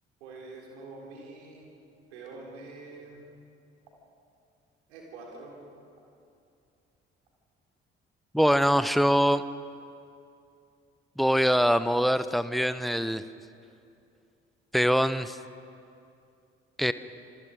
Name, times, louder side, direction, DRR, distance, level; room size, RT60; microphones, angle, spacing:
voice 1, 0.2-1.8 2.1-3.3 4.9-5.5, right 3 dB, 75° right, -1 dB, 3.8 m, -45 dB
voice 2, 8.3-9.4 11.2-13.2 14.7-15.4 16.8-16.9, equal, ahead, 13 dB, 0.9 m, -23 dB
26.5 x 22.0 x 5.1 m, 2.5 s
figure-of-eight pair, 45°, 33 cm